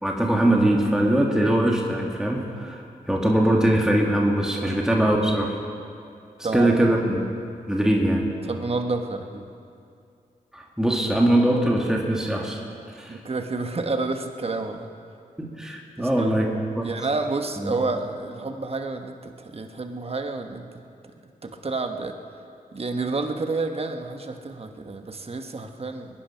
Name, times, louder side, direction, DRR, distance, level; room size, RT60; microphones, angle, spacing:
voice 1, 0.0-2.8 3.1-5.6 6.5-7.2 7.7-8.3 10.5-12.6 13.0-13.2 15.4-16.8 17.6-17.8, right 1 dB, 5° right, -1 dB, 2.1 m, -22 dB
voice 2, 8.4-9.4 13.1-14.9 16.0-16.4 16.8-20.7 21.4-22.1 22.7-26.1, right 3 dB, 40° right, 5 dB, 1.3 m, -29 dB
21.5 x 10.5 x 5.8 m, 2.4 s
cardioid pair, 60°, 15 cm